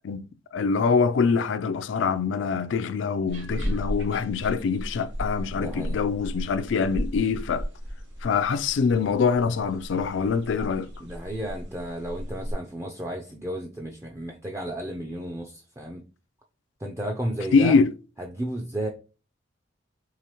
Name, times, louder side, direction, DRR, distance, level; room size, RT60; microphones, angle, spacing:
voice 1, 0.5-7.7 8.2-10.9 17.5-17.9, left 5 dB, 75° left, 0.4 m, -24 dB
sound 1, 3.3-12.5, equal, 70° right, 1.5 m, -35 dB
voice 2, 5.5-6.0 11.0-16.0 16.8-17.8 18.2-18.9, right 1 dB, 15° right, 0.4 m, -33 dB
4.8 x 3.4 x 2.9 m
head